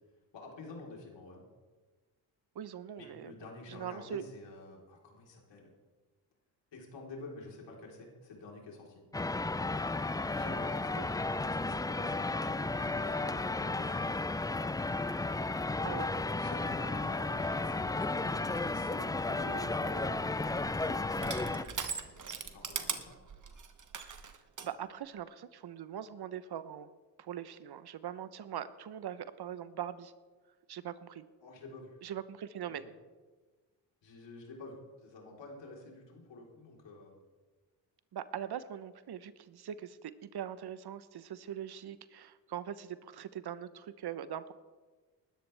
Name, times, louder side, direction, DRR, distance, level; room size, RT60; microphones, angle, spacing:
voice 1, 0.3-1.4 3.0-5.7 6.7-9.0 10.3-14.1 16.3-20.2 20.5-23.2 31.4-32.0 32.7-32.9 34.0-37.2, left 2 dB, 70° left, -1 dB, 4.0 m, -49 dB
voice 2, 2.5-3.3 3.7-4.3 11.0-11.1 15.8-16.4 24.6-26.9 27.2-30.1 30.7-31.2 32.0-32.9 38.1-44.5, right 9 dB, 60° right, 14 dB, 0.9 m, -42 dB
sound 1, 9.1-21.6, left 2 dB, 10° left, 0.4 m, -33 dB
Crushing, 19.8-24.7, right 6 dB, 45° right, 1.3 m, -41 dB
19.5 x 13.0 x 3.4 m, 1.3 s
supercardioid pair, 55°, 44 cm